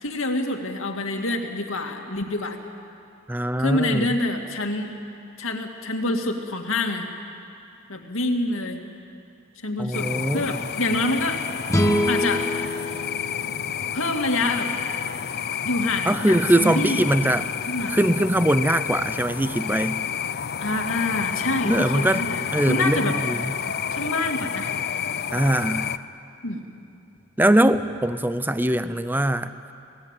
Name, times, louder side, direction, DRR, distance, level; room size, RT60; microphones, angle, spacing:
voice 1, 0.0-2.6 3.6-4.9 5.4-7.1 7.9-8.8 9.6-11.4 12.1-12.4 13.9-14.7 15.6-17.1 17.7-18.0 20.6-23.2 23.9-24.7 26.4-26.6, left 2 dB, 65° left, 3 dB, 2.3 m, -26 dB
voice 2, 3.3-4.1 9.8-10.4 16.0-17.5 17.9-20.0 21.6-22.3 22.5-23.5 25.3-25.9 27.4-29.5, right 1 dB, 10° right, 12 dB, 0.7 m, -22 dB
sound 1, 9.9-26.0, left 8 dB, 45° left, 0.6 m, -30 dB
sound 2, 11.7-15.0, equal, 15° left, 1.5 m, -26 dB
27.5 x 18.5 x 9.1 m, 2.7 s
head